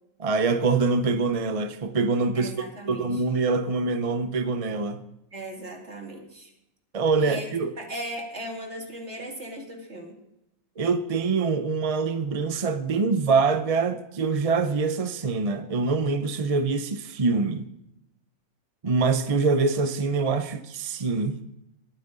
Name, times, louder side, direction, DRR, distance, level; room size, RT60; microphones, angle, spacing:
voice 1, 0.2-2.5 2.9-5.0 6.9-7.7 10.8-17.7 18.8-21.4, right 4 dB, 35° right, 0.6 m, -24 dB
voice 2, 2.3-3.2 5.3-6.5 7.2-7.4 7.8-10.2, right 1 dB, 50° right, 2.9 m, -37 dB
21.0 x 9.2 x 3.9 m
omnidirectional pair, 1.5 m